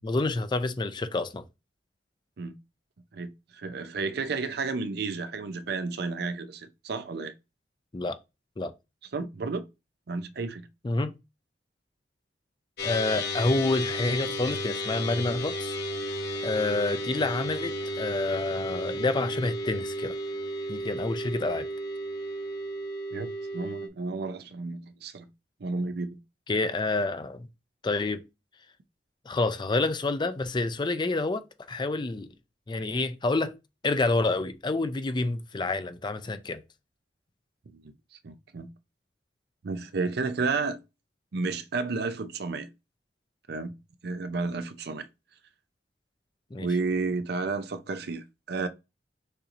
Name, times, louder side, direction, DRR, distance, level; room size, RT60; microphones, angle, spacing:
voice 1, 0.0-1.4 7.9-8.2 8.6-8.7 10.8-11.1 12.8-15.8 16.4-20.1 20.7-21.7 26.5-27.5 27.8-28.2 29.3-31.4 31.7-32.3 32.7-33.5 33.8-36.6 46.5-46.7, left 2 dB, 25° left, 0.4 m, -28 dB
voice 2, 3.1-7.3 9.1-9.7 10.1-10.7 23.1-25.3 25.6-26.2 37.7-37.9 38.2-38.7 39.6-40.8 41.3-42.7 43.5-43.7 44.0-45.1 46.6-48.7, right 4 dB, 65° right, 0.5 m, -32 dB
sound 1, 12.8-23.9, equal, 65° left, 1.1 m, -33 dB
6.6 x 3.0 x 2.5 m
head